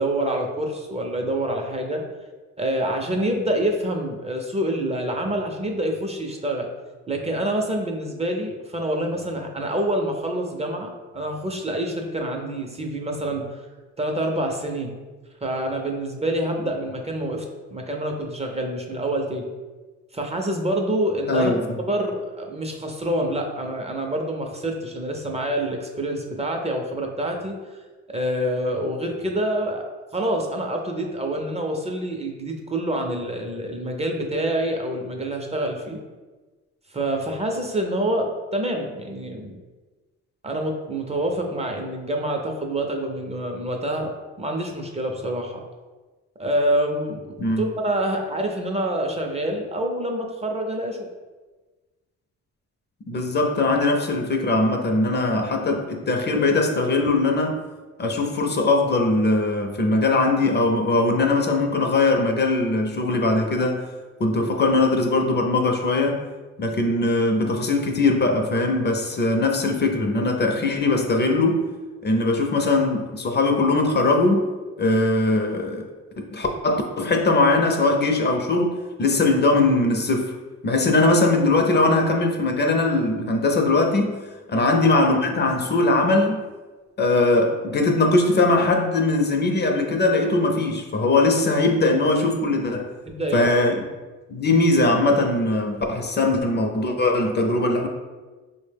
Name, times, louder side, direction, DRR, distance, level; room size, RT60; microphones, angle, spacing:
voice 1, 0.0-2.0 2.6-6.7 7.1-13.6 14.0-14.9 15.4-17.4 17.7-19.5 20.1-21.5 21.8-27.6 28.1-29.8 30.1-36.0 36.9-39.6 40.4-44.1 44.4-45.6 46.4-51.1 64.3-64.4 84.5-84.7 93.1-93.6, right 1 dB, 20° right, 2 dB, 0.5 m, -26 dB
voice 2, 21.3-21.8 47.4-47.7 53.1-57.6 58.0-63.8 64.2-66.2 66.6-71.6 72.0-74.5 74.8-75.9 76.3-80.3 80.6-84.2 84.5-86.4 87.0-92.9 93.3-93.8 94.3-97.9, left 2 dB, 35° left, 3 dB, 0.5 m, -20 dB
4.1 x 2.1 x 3.3 m, 1.3 s
cardioid pair, 90°, 30 cm